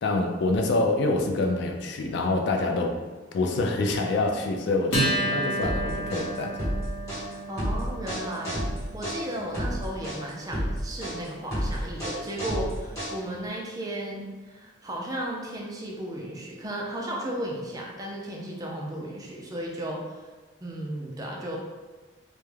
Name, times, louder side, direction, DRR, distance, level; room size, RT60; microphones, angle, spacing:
voice 1, 0.0-2.9 3.3-6.7, left 2 dB, 60° left, 2 dB, 0.3 m, -26 dB
Acoustic guitar, 4.9-11.8, right 1 dB, 80° left, 0.8 m, -33 dB
sound 1, 5.6-13.5, equal, 15° left, 1.1 m, -31 dB
voice 2, 7.5-8.6 8.9-20.0 20.6-21.6, right 1 dB, 20° right, -2 dB, 0.3 m, -34 dB
2.2 x 2.1 x 3.1 m, 1.3 s
head